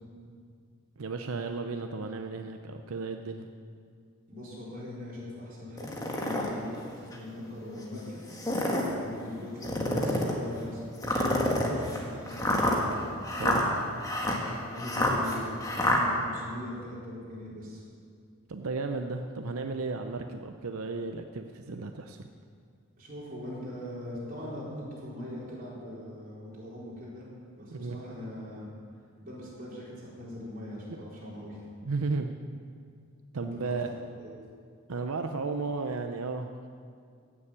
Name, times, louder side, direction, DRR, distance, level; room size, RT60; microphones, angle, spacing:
voice 1, 1.0-3.5 13.3-13.6 18.5-22.3 27.7-28.0 30.9-31.0 31.8-32.3 33.3-33.9 34.9-36.5, right 4 dB, 90° right, 6 dB, 0.7 m, -34 dB
voice 2, 4.3-8.2 9.0-12.4 14.7-17.8 23.0-27.3 27.5-28.7 29.2-31.6 33.4-33.8 34.2-34.3, left 1 dB, 40° right, -7 dB, 4.5 m, -41 dB
sound 1, 5.8-6.5 7.1-7.2 8.2-8.9 9.6-10.4 11.0-16.0, left 1 dB, 15° left, 1.6 m, -28 dB
15.5 x 7.2 x 8.8 m, 2.2 s
head